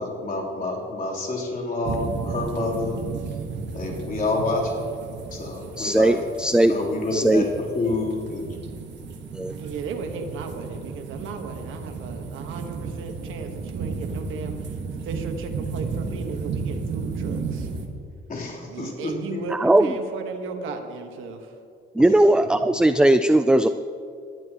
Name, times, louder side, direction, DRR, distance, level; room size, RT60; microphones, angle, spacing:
voice 1, 0.0-3.0 3.7-4.8 5.3-6.2 6.5-8.4 18.3-19.4 22.0-22.2, left 2 dB, 45° left, -3 dB, 3.7 m, -28 dB
sound 1, 1.8-17.9, right 4 dB, 65° right, 1.7 m, -33 dB
voice 2, 5.8-6.7 7.1-7.4 9.4-9.5 19.5-19.9 22.0-23.7, right 1 dB, 5° right, 10 dB, 0.4 m, -18 dB
voice 3, 9.6-14.6 15.0-17.7 18.7-21.5, right 4 dB, 85° right, 5 dB, 1.5 m, -35 dB
20.0 x 12.0 x 3.1 m, 2.4 s
cardioid pair, 90°, 20 cm